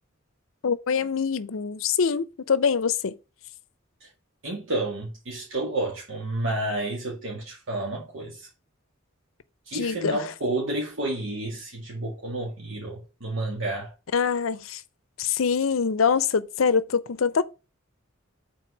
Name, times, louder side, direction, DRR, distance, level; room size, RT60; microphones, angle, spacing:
voice 1, 0.6-3.1 9.7-10.3 14.1-14.8 15.2-17.4, left 6 dB, 80° left, 0.6 m, -24 dB
voice 2, 4.4-8.5 9.7-13.9, right 2 dB, 65° right, 1.9 m, -30 dB
5.9 x 4.1 x 6.2 m
head